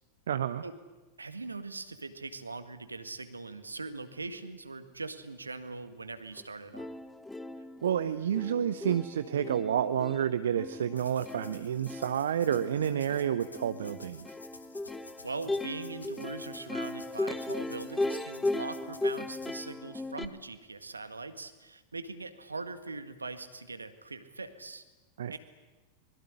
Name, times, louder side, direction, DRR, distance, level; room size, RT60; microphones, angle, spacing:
voice 1, 0.3-0.6 7.8-14.4 25.2-25.4, right 9 dB, 65° right, 13 dB, 0.8 m, -30 dB
voice 2, 1.2-6.9 15.2-24.8 25.3-25.4, right 3 dB, 80° right, 11 dB, 1.9 m, -41 dB
Plucked string instrument, 6.4-6.5 6.7-20.3, left 2 dB, 5° left, 1.2 m, -37 dB
sound 1, 10.9-19.7, left 3 dB, 80° left, 2.4 m, -53 dB
24.5 x 22.0 x 9.9 m, 1.2 s
figure-of-eight pair, 90°, 0 cm